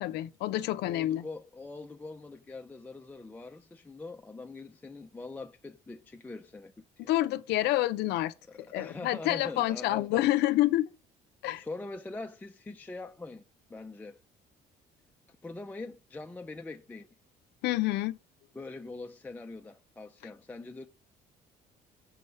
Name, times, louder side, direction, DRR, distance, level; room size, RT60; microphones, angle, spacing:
voice 1, 0.0-1.3 7.1-10.9 11.4-11.6 17.6-18.2, left 15 dB, 80° left, 0.4 m, -28 dB
voice 2, 0.8-7.1 8.5-10.3 11.6-13.4 13.7-14.2 15.4-17.1 18.5-20.9, left 3 dB, 10° left, 0.3 m, -43 dB
6.2 x 3.2 x 5.5 m
cardioid pair, 110°, 17 cm